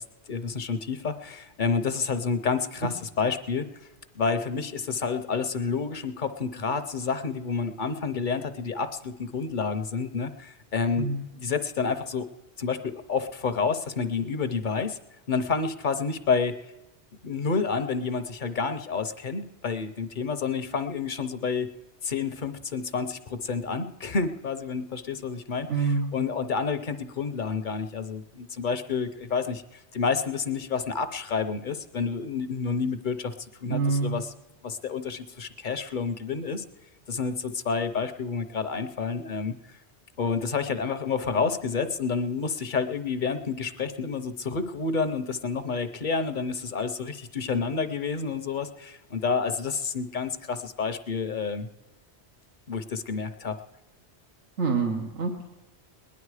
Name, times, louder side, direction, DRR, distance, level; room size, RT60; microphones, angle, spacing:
voice 1, 0.3-3.7 4.1-11.1 11.3-12.3 12.6-15.0 15.3-16.6 17.2-21.7 22.0-29.6 29.9-33.3 33.6-34.3 34.6-36.6 37.1-39.5 40.2-51.7 52.7-53.6, left 5 dB, 50° left, 10 dB, 0.8 m, -29 dB
voice 2, 25.7-26.1 33.7-34.2 54.6-55.5, right 4 dB, 90° right, 2 dB, 1.5 m, -26 dB
19.5 x 10.5 x 4.8 m, 1.0 s
omnidirectional pair, 1.2 m